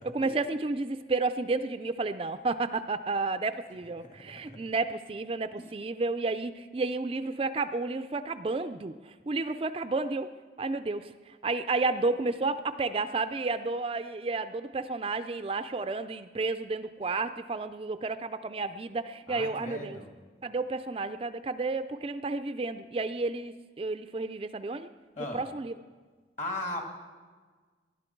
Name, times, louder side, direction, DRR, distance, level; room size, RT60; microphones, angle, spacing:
voice 1, 0.0-10.3 10.6-20.0 20.4-24.9 25.3-25.7, right 3 dB, 30° right, 11 dB, 0.4 m, -31 dB
voice 2, 19.3-20.1 25.2-25.4 26.4-26.8, left 1 dB, 45° left, 2 dB, 2.1 m, -37 dB
19.5 x 11.5 x 4.5 m, 1.4 s
head